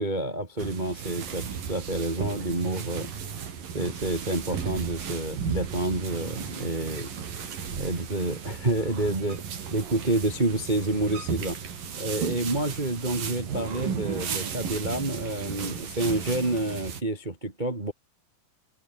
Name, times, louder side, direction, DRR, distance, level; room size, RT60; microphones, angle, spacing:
voice 1, 0.0-3.1 3.7-7.1 7.7-9.4 9.7-11.6 11.9-17.9, right 2 dB, 85° right, 0.4 m, -29 dB
sound 1, 0.6-17.0, right 7 dB, 50° right, 4.9 m, -35 dB
omnidirectional pair, 5.3 m